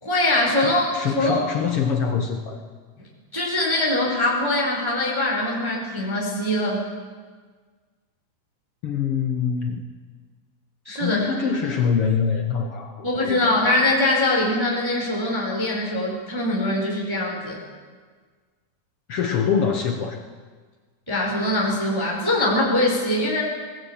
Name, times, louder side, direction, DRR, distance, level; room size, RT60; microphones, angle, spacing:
voice 1, 0.0-1.4 3.3-6.8 10.9-11.2 13.0-17.6 21.1-23.4, left 1 dB, 5° right, -3 dB, 4.0 m, -22 dB
voice 2, 0.6-2.6 8.8-9.8 11.0-13.7 19.1-20.2, left 6 dB, 65° left, 5 dB, 1.4 m, -24 dB
19.5 x 19.0 x 8.8 m, 1.5 s
omnidirectional pair, 4.2 m